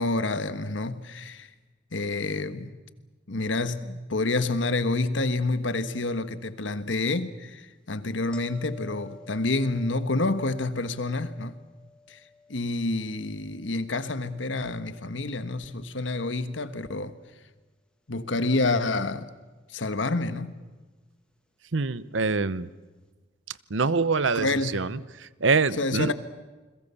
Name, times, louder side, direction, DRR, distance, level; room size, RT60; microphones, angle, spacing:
voice 1, 0.0-1.5 1.9-2.8 3.3-11.6 12.1-12.2 12.5-17.1 18.1-19.3 19.7-20.5 24.3-24.9 25.8-26.1, left 2 dB, 75° left, 1.5 m, -28 dB
sound 1, 8.3-15.3 20.6-20.7, left 3 dB, 5° left, 2.0 m, -52 dB
voice 2, 21.7-22.7 23.7-24.5 24.7-26.1, right 4 dB, 80° right, 0.9 m, -25 dB
29.5 x 21.5 x 7.1 m
head